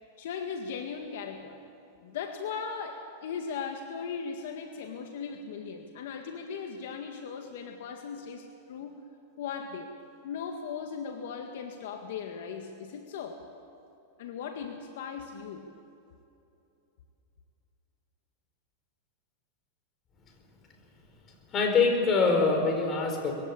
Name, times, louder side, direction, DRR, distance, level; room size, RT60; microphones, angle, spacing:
voice 1, 0.2-1.6 2.0-9.0 9.4-9.9 10.2-13.4 14.2-15.7, left 6 dB, 70° left, 4 dB, 1.8 m, -38 dB
voice 2, 21.5-23.3, left 4 dB, 30° left, 3 dB, 4.6 m, -24 dB
21.5 x 16.0 x 8.7 m, 2.7 s
hypercardioid pair, 130°, 0 cm